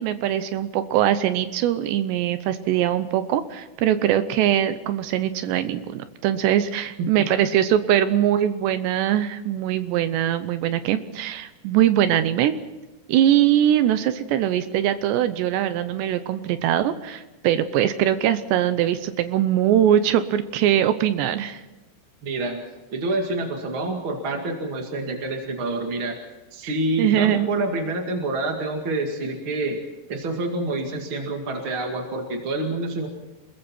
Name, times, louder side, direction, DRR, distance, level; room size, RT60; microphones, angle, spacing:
voice 1, 0.0-12.6 13.1-21.6 26.6-27.5, right 11 dB, 80° right, 11 dB, 2.6 m, -22 dB
voice 2, 22.2-22.6 22.9-26.2 26.5-29.8 30.1-33.1, right 2 dB, 50° right, 2 dB, 1.5 m, -27 dB
28.5 x 21.5 x 4.4 m, 1.1 s
omnidirectional pair, 5.8 m